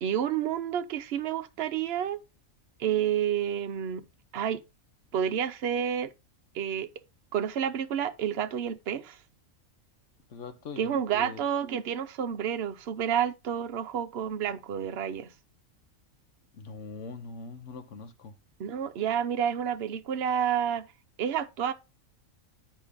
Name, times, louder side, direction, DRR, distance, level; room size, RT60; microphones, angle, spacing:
voice 1, 0.0-2.2 2.8-4.0 4.3-4.6 5.1-6.1 6.5-6.9 7.3-9.2 10.8-15.3 18.6-20.9 21.2-21.7, right 9 dB, 55° right, 0.9 m, -29 dB
voice 2, 10.3-11.4 16.5-18.3, left 4 dB, 65° left, 1.3 m, -42 dB
8.3 x 5.2 x 3.5 m
omnidirectional pair, 1.4 m